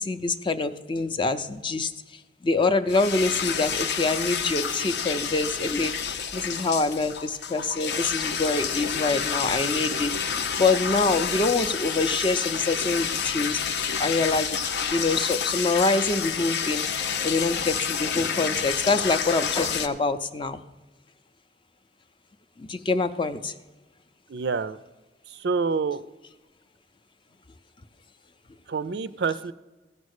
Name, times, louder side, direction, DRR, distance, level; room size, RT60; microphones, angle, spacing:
voice 1, 0.0-1.9 2.4-10.2 10.6-13.6 14.0-14.5 14.9-16.8 17.2-20.6 22.6-23.5, left 3 dB, 30° left, 10 dB, 0.5 m, -25 dB
sound 1, 2.9-19.9, left 7 dB, 70° left, 0.6 m, -29 dB
voice 2, 24.3-24.8 25.3-26.0 28.7-29.5, right 5 dB, 65° right, 14 dB, 0.4 m, -27 dB
16.0 x 5.3 x 6.5 m, 1.1 s
head